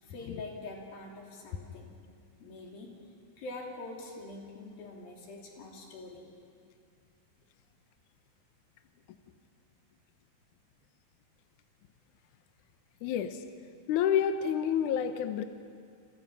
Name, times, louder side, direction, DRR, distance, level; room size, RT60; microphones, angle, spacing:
voice 1, 0.0-1.9 2.4-2.9 3.4-6.3, left 2 dB, 90° left, -1 dB, 4.9 m, -44 dB
voice 2, 13.0-13.4 13.9-15.4, left 8 dB, 70° left, 8 dB, 2.2 m, -28 dB
29.0 x 24.5 x 5.6 m, 2.2 s
omnidirectional pair, 4.0 m